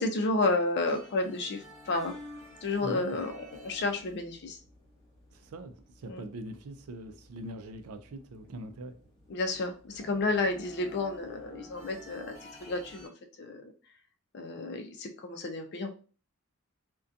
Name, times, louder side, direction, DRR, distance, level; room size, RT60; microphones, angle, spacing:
voice 1, 0.0-2.1 2.6-4.6 6.1-6.3 9.3-12.3 12.6-13.1 13.4-13.6 14.3-15.9, left 2 dB, 50° left, 0.4 m, -31 dB
sound 1, 0.8-13.1, left 1 dB, 20° left, 1.0 m, -52 dB
voice 2, 2.8-3.2 5.3-8.9, right 1 dB, 85° right, 0.4 m, -42 dB
2.5 x 2.2 x 2.5 m
head